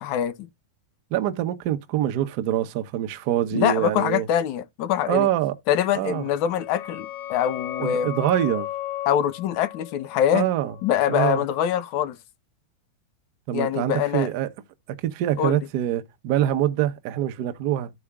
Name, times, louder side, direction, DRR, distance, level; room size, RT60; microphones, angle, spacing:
voice 1, 0.0-0.5 3.5-5.3 5.7-8.1 9.1-10.5 10.8-12.2 13.5-14.3 15.4-15.6, left 10 dB, 50° left, 0.8 m, -24 dB
voice 2, 1.1-4.3 5.1-5.5 5.9-6.3 7.8-8.7 10.3-10.7 11.1-11.4 13.5-14.5 14.9-17.9, right 12 dB, 55° right, 1.1 m, -25 dB
sound 1, 6.1-11.6, left 13 dB, 75° left, 2.7 m, -36 dB
14.5 x 4.9 x 2.4 m
hypercardioid pair, 125°, 0 cm